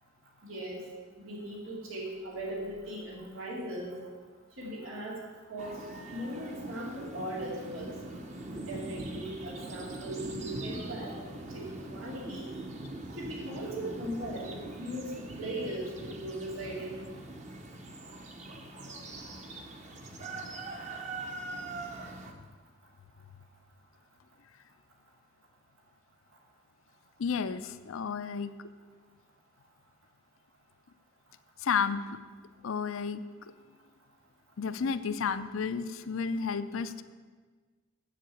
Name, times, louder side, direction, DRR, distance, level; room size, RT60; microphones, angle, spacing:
voice 1, 0.4-0.8 1.2-4.0 4.6-5.8 6.1-8.0 8.7-12.6 13.2-17.0, right 1 dB, 90° right, -3 dB, 2.5 m, -39 dB
sound 1, 5.6-22.3, right 2 dB, 35° right, 1.0 m, -42 dB
voice 2, 27.2-28.5 31.6-32.1 32.6-33.2 34.6-37.0, left 6 dB, 85° left, 12 dB, 0.5 m, -32 dB
7.7 x 7.4 x 8.3 m, 1.4 s
head